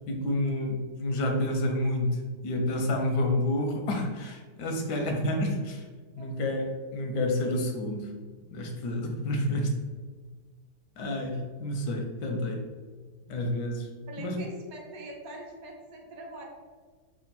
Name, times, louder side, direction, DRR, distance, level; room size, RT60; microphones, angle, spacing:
voice 1, 0.1-5.9 6.2-8.1 8.5-9.7 11.0-12.6 13.2-13.9 14.2-14.4, left 1 dB, 85° left, 3 dB, 1.2 m, -29 dB
voice 2, 14.1-16.4, right 1 dB, 65° right, 0 dB, 1.1 m, -43 dB
3.5 x 2.5 x 4.0 m, 1.5 s
omnidirectional pair, 1.8 m